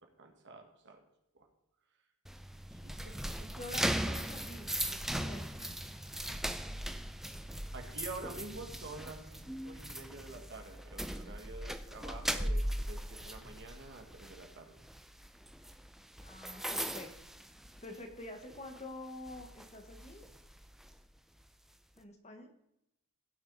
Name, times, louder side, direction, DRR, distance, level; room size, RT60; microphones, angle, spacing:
voice 1, 0.2-1.0 2.7-3.7 7.7-14.8 16.5-16.6, right 3 dB, 55° right, 3 dB, 1.8 m, -48 dB
sound 1, 2.3-18.2 18.5-18.8 19.3-20.9, equal, ahead, 0.4 m, -39 dB
voice 2, 3.4-5.5 16.2-17.1 17.8-20.3 22.0-22.5, left 2 dB, 30° left, 5 dB, 1.2 m, -47 dB
16.5 x 6.3 x 4.0 m, 0.84 s
head